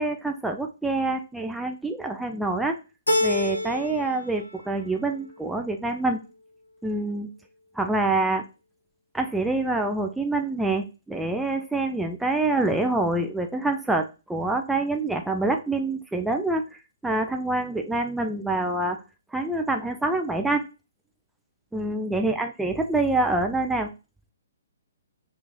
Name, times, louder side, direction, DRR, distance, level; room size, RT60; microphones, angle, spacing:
voice 1, 0.0-2.8 3.2-6.2 6.8-7.3 7.7-8.4 9.1-19.0 19.3-20.6 21.7-23.9, right 2 dB, 5° right, 4 dB, 0.3 m, -26 dB
Keyboard (musical), 3.1-4.2 4.5-5.2, left 1 dB, 80° left, 0.7 m, -27 dB
3.0 x 2.4 x 3.7 m, 0.30 s
figure-of-eight pair, 125°, 0 cm